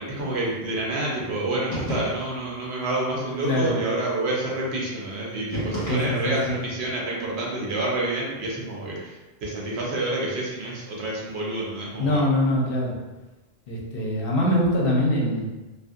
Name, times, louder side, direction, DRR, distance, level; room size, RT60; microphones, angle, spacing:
voice 1, 0.0-12.2, right 2 dB, 80° right, -3 dB, 1.0 m, -28 dB
sound 1, 1.7-2.5 5.5-6.5, equal, 35° left, 1.2 m, -32 dB
voice 2, 3.4-3.8 5.9-6.6 12.0-12.9 13.7-15.5, left 1 dB, 65° left, -3 dB, 0.8 m, -23 dB
2.6 x 2.5 x 2.4 m, 1.1 s
omnidirectional pair, 1.1 m